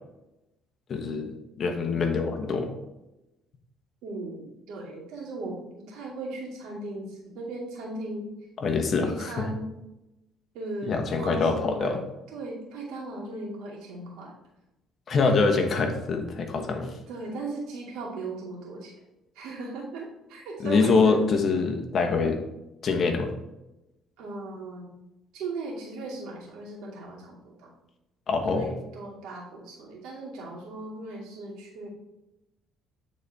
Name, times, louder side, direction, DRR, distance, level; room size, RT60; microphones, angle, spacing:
voice 1, 0.9-1.3 1.6-2.7 8.6-9.5 10.9-12.0 15.1-16.9 20.6-22.4 22.8-23.3 28.3-28.7, left 4 dB, 45° left, 4 dB, 1.1 m, -24 dB
voice 2, 4.0-8.3 9.0-9.6 10.5-12.0 12.3-14.3 17.1-18.9 19.3-21.2 24.2-24.9 25.3-27.7 28.5-31.9, right 2 dB, 85° right, -4 dB, 2.5 m, -37 dB
9.4 x 4.2 x 3.5 m, 0.95 s
cardioid pair, 110°, 0 cm